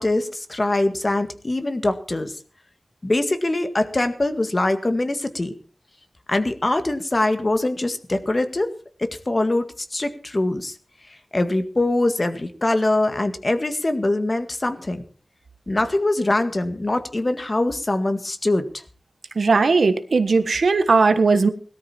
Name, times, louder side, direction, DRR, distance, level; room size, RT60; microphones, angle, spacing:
voice 1, 0.0-2.4 3.0-5.5 6.3-8.7 9.0-10.8 11.1-15.0 15.7-18.8, left 2 dB, 35° left, 8 dB, 1.9 m, -23 dB
voice 2, 19.3-21.5, right 4 dB, 80° right, 10 dB, 1.4 m, -18 dB
17.5 x 13.0 x 4.4 m, 0.38 s
wide cardioid pair, 70°, 0 cm